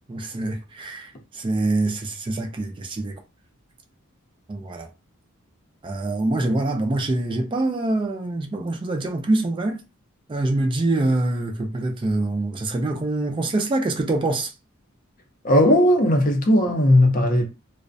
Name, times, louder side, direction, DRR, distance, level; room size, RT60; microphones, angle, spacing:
voice 1, 0.1-3.2 4.5-4.9 5.8-9.8 10.3-14.5, right 2 dB, 25° right, 0.3 m, -25 dB
voice 2, 15.4-17.5, left 1 dB, 40° left, 0.5 m, -17 dB
2.4 x 2.0 x 2.5 m
head